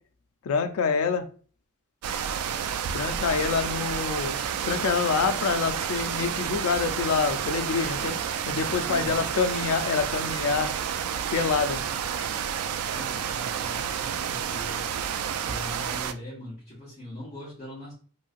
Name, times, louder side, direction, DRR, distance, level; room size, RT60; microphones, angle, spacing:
voice 1, 0.4-1.3 2.9-4.4 4.6-8.2 8.5-10.7 11.3-11.8, left 5 dB, 75° left, 7 dB, 0.4 m, -26 dB
sound 1, 2.0-16.1, right 8 dB, 90° right, 0.3 m, -30 dB
voice 2, 8.6-9.1 12.9-14.9 15.4-17.9, left 1 dB, 30° left, -10 dB, 1.2 m, -41 dB
3.0 x 2.6 x 2.4 m, 0.42 s
head